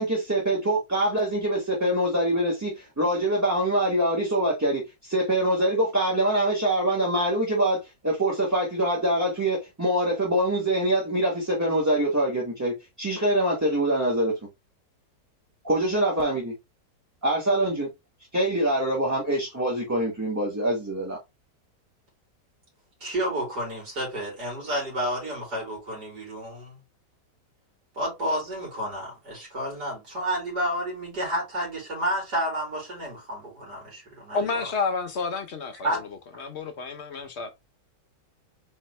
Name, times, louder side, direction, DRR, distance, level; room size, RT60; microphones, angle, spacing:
voice 1, 0.0-14.3 15.6-16.5 17.2-17.9 18.3-21.2, right 1 dB, 10° right, 1.0 m, -24 dB
voice 2, 23.0-26.8 27.9-34.5 35.8-36.0, equal, 70° right, 3.0 m, -30 dB
voice 3, 34.3-36.0 36.4-37.5, left 4 dB, 55° left, 0.8 m, -30 dB
4.3 x 3.5 x 3.2 m
omnidirectional pair, 1.9 m